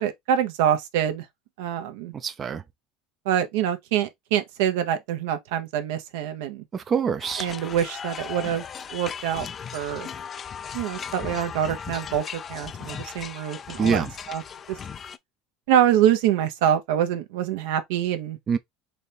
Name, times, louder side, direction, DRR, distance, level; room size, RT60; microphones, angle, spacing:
voice 1, 0.0-1.3 1.6-2.1 3.2-6.6 7.4-8.6 8.9-9.5 9.7-10.1 10.7-14.0 14.3-14.4 15.7-18.4, right 10 dB, 80° right, 0.8 m, -25 dB
voice 2, 2.1-2.6 6.7-7.5 13.8-14.1 18.5-18.6, right 6 dB, 35° right, 0.4 m, -25 dB
sound 1, 7.2-15.2, left 7 dB, 35° left, 0.3 m, -37 dB
4.1 x 2.9 x 3.3 m
supercardioid pair, 105°, 0 cm